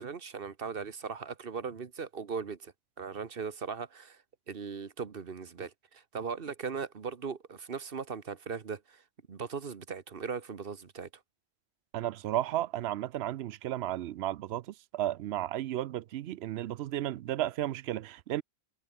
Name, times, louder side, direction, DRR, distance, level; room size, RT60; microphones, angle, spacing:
voice 1, 0.0-2.7 3.0-4.2 4.5-9.0 9.3-11.1, right 5 dB, 60° right, 1.4 m, -38 dB
voice 2, 11.9-14.6 14.9-18.4, right 13 dB, 80° right, 0.8 m, -33 dB
omnidirectional pair, 1.1 m